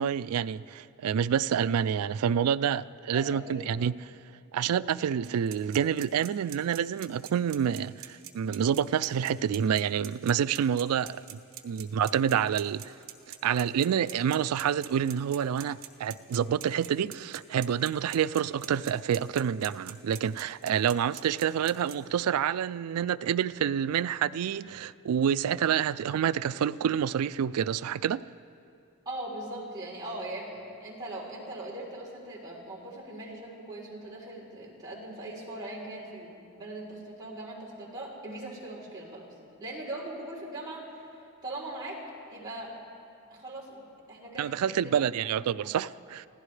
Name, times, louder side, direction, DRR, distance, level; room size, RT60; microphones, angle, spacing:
voice 1, 0.0-3.9 4.5-12.9 13.4-28.3 44.4-46.3, right 8 dB, 90° right, 0.3 m, -28 dB
voice 2, 3.1-3.9 29.0-39.3 39.6-41.1 41.4-42.0 42.3-42.7 43.3-45.1 45.6-45.7, right 1 dB, 20° right, 3.5 m, -40 dB
sound 1, 5.2-21.9, right 11 dB, 65° right, 1.0 m, -44 dB
26.0 x 16.0 x 3.3 m
head